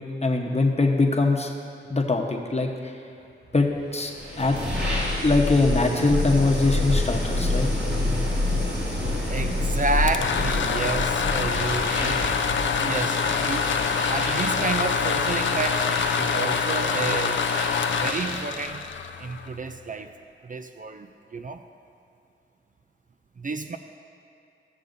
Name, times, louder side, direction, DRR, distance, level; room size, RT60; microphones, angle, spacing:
voice 1, 0.0-1.5 1.9-2.9 3.5-4.1 4.4-4.6 5.2-7.7, left 3 dB, 30° left, 1 dB, 1.0 m, -22 dB
sound 1, 3.9-18.6, left 1 dB, 55° right, 2.2 m, -28 dB
voice 2, 9.3-12.3 12.8-13.7 14.1-17.4 18.0-18.8 19.2-20.1 20.4-21.1 21.3-21.6 23.4-23.8, right 3 dB, 40° right, 7 dB, 0.4 m, -30 dB
sound 2, 9.9-19.7, left 6 dB, 65° left, 0.4 m, -26 dB
15.0 x 6.7 x 2.6 m, 2.5 s
cardioid pair, 45°, 21 cm